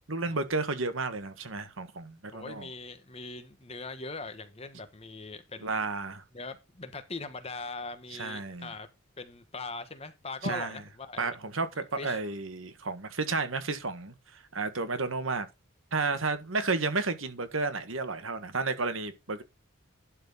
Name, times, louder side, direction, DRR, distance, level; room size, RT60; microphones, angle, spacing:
voice 1, 0.1-2.7 5.6-6.2 8.1-8.7 10.4-10.8 11.2-15.5 15.9-19.4, right 3 dB, 70° right, 1.5 m, -32 dB
voice 2, 2.3-5.8 6.3-8.9 9.2-11.4 12.0-12.2, left 3 dB, 30° left, 1.2 m, -41 dB
11.5 x 4.3 x 5.5 m
head